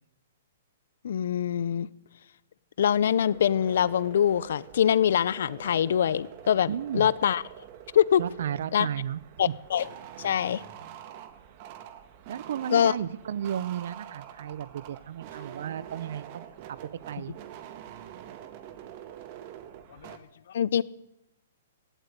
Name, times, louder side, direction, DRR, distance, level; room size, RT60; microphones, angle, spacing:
voice 1, 1.0-1.9 2.8-7.4 7.9-8.2 8.7-8.9 9.4-9.9 10.2-10.6 12.7-12.9 19.9-20.2 20.5-20.8, left 9 dB, 65° left, 20 dB, 0.7 m, -24 dB
sound 1, 3.2-20.2, right 10 dB, 40° right, 1.6 m, -46 dB
voice 2, 6.7-7.1 8.2-9.5 12.3-16.8 17.1-17.4, right 9 dB, 65° right, 21 dB, 0.7 m, -34 dB
17.5 x 8.2 x 9.6 m, 0.88 s
hypercardioid pair, 145°, 0 cm